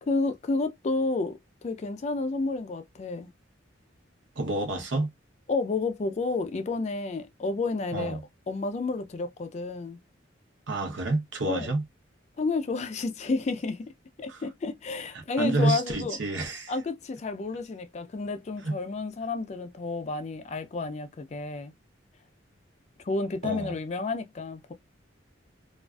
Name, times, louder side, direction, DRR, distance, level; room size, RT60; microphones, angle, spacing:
voice 1, 0.0-3.3 5.5-8.2 8.5-10.0 11.5-11.7 12.4-13.9 14.2-16.2 16.7-21.7 23.0-24.7, left 3 dB, 35° left, 0.3 m, -31 dB
voice 2, 4.4-5.1 7.9-8.2 10.7-11.8 14.3-14.4 15.1-16.7 18.6-18.8 23.4-23.7, right 2 dB, 70° right, 0.7 m, -29 dB
2.4 x 2.3 x 2.2 m
head